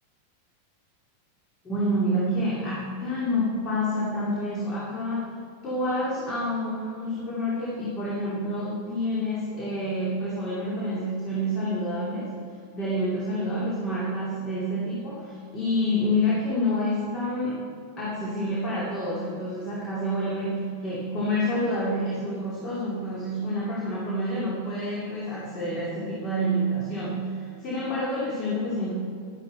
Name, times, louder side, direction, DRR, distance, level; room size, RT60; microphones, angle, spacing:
voice 1, 1.6-5.3 5.6-12.3 12.7-17.6 18.0-28.9, equal, 25° left, -6 dB, 2.5 m, -28 dB
12.0 x 10.5 x 4.3 m, 2.4 s
figure-of-eight pair, 90°, 0 cm